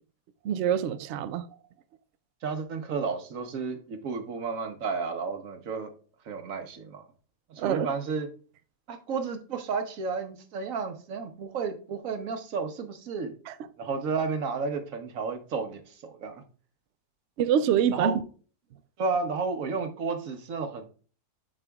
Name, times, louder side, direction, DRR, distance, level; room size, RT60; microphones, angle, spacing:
voice 1, 0.4-1.5 7.6-7.9 13.5-13.6 17.4-18.1, right 9 dB, 90° right, 0.6 m, -25 dB
voice 2, 2.4-5.9 6.2-7.1 7.5-8.3 8.9-13.3 13.8-16.4 17.9-18.2 19.0-20.9, right 5 dB, 60° right, 1.3 m, -32 dB
9.8 x 5.5 x 2.3 m
omnidirectional pair, 1.7 m